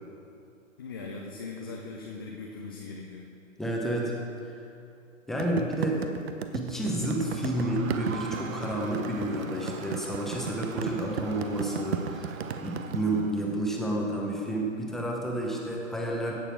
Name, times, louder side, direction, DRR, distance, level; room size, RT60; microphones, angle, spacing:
voice 1, 0.8-3.3 5.3-5.4, left 3 dB, 20° left, 0 dB, 0.4 m, -40 dB
voice 2, 3.6-4.1 5.3-6.0 6.5-16.3, right 1 dB, ahead, -2 dB, 0.9 m, -30 dB
sound 1, 5.4-13.0, right 8 dB, 50° right, 0.8 m, -34 dB
Crowd, 6.8-13.7, right 6 dB, 85° right, 0.7 m, -44 dB
16.5 x 6.7 x 4.5 m, 2.7 s
hypercardioid pair, 135°, 39 cm